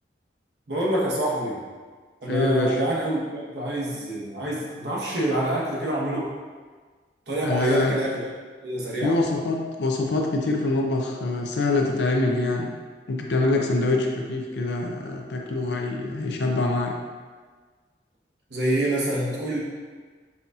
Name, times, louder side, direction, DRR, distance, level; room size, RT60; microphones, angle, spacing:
voice 1, 0.7-1.6 2.2-6.3 7.3-8.2 8.6-9.2 18.5-19.6, right 1 dB, 70° right, -5 dB, 1.0 m, -26 dB
voice 2, 2.3-2.8 7.4-8.0 9.0-12.7 13.1-17.0, left 2 dB, 70° left, 1 dB, 0.5 m, -24 dB
5.6 x 2.3 x 2.7 m, 1.5 s
head